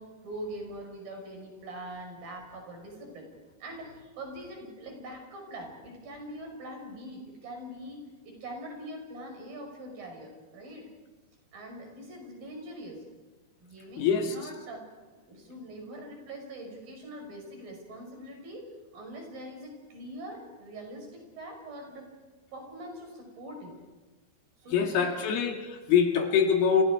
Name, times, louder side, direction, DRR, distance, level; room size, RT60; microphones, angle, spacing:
voice 1, 0.0-3.3 3.6-10.8 11.5-13.0 13.6-14.9 15.3-18.7 18.9-22.1 22.5-23.7 24.6-25.2, right 1 dB, 60° right, 2 dB, 7.0 m, -43 dB
voice 2, 14.0-14.4 24.7-26.8, left 7 dB, 70° left, 3 dB, 3.8 m, -24 dB
30.0 x 25.5 x 4.8 m, 1.3 s
omnidirectional pair, 4.6 m